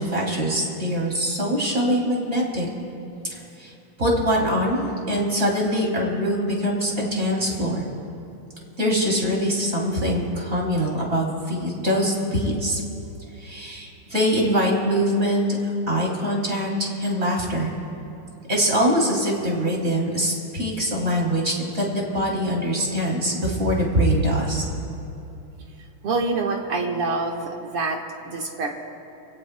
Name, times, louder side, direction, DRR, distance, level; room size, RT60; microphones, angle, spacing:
voice 1, 0.0-2.7 3.3-3.7 4.0-7.8 8.8-12.8 13.4-17.7 18.5-24.6, equal, 30° right, -2 dB, 3.0 m, -23 dB
voice 2, 26.0-28.0 28.3-28.7, right 3 dB, 85° right, 1 dB, 2.4 m, -26 dB
28.5 x 17.0 x 2.2 m, 2.8 s
omnidirectional pair, 2.4 m